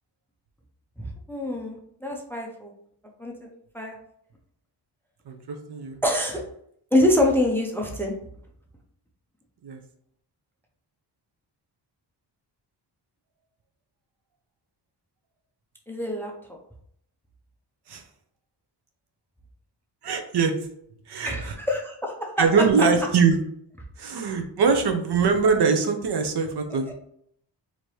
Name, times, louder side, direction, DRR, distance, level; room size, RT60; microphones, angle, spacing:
voice 1, 1.0-2.7 3.2-3.5 3.7-4.0 6.0-6.4 6.9-8.2 15.9-16.3 21.2-22.3, left 1 dB, 5° left, 1 dB, 0.5 m, -25 dB
voice 2, 5.3-6.0 9.6-9.8 17.9-18.0 20.0-20.5 21.1-21.6 22.4-23.4 24.0-26.9, right 5 dB, 60° right, 5 dB, 0.7 m, -22 dB
4.4 x 2.8 x 3.1 m, 0.68 s
wide cardioid pair, 170°, 45 cm